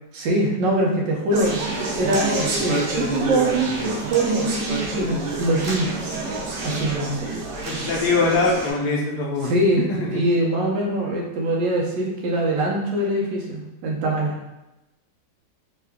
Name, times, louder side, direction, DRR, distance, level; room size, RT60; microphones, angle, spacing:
voice 1, 0.1-1.5 2.0-2.3 2.6-5.9 6.6-7.4 9.4-9.8 10.1-14.4, right 1 dB, 90° right, -1 dB, 1.4 m, -23 dB
Conversation, 1.3-8.7, right 2 dB, 70° right, 1.2 m, -27 dB
voice 2, 7.6-9.5 9.9-10.2, left 3 dB, 70° left, -1 dB, 1.1 m, -23 dB
3.6 x 2.3 x 3.4 m, 0.98 s
omnidirectional pair, 1.9 m